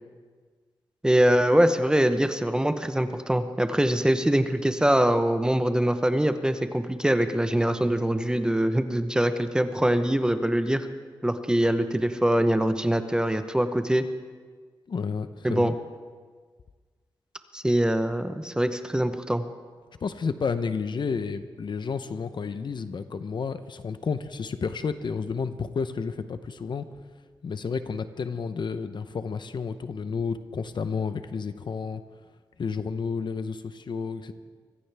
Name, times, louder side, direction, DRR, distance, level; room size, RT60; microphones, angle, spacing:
voice 1, 1.0-10.9 11.2-14.0 15.4-15.7 17.5-19.4, right 1 dB, 10° right, 9 dB, 0.9 m, -23 dB
voice 2, 14.9-15.8 20.0-26.9 27.4-32.0 32.6-34.3, left 5 dB, 65° left, 11 dB, 0.7 m, -31 dB
23.5 x 15.5 x 3.5 m, 1.5 s
wide cardioid pair, 105°, 9 cm